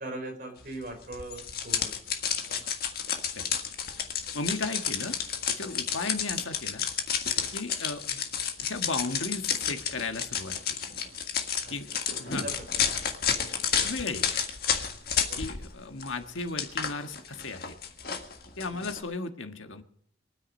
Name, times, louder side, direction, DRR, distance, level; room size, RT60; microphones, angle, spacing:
voice 1, 0.0-1.9 2.4-2.6 11.6-11.7 12.2-13.0 15.3-15.4 18.7-18.9, right 1 dB, 45° right, 2 dB, 4.6 m, -40 dB
sound 1, 1.1-15.7 16.0-19.0, left 7 dB, 50° left, 1.7 m, -31 dB
voice 2, 4.3-5.2 5.5-6.8 7.5-8.2 8.6-10.8 11.7-11.9 12.1-12.5 13.8-14.4 15.4-17.7 18.6-19.8, left 3 dB, 85° left, 7 dB, 1.5 m, -35 dB
23.0 x 9.8 x 5.4 m, 0.67 s
head